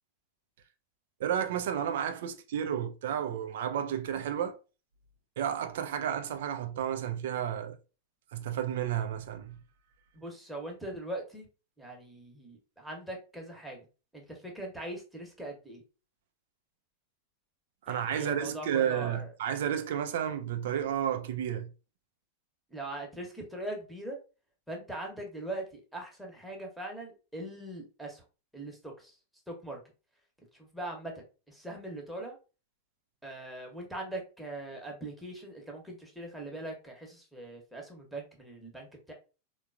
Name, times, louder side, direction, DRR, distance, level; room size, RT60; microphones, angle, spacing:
voice 1, 1.2-4.6 5.4-7.8 8.3-9.6 17.8-21.7, right 9 dB, 55° right, 0.4 m, -32 dB
voice 2, 10.1-11.5 11.8-13.9 14.1-15.8 17.9-19.3 22.7-24.2 24.7-28.2 28.5-29.2 29.5-29.8 30.5-32.4 33.2-39.1, right 1 dB, ahead, 0.9 m, -41 dB
3.6 x 2.3 x 2.4 m
figure-of-eight pair, 90°, 0 cm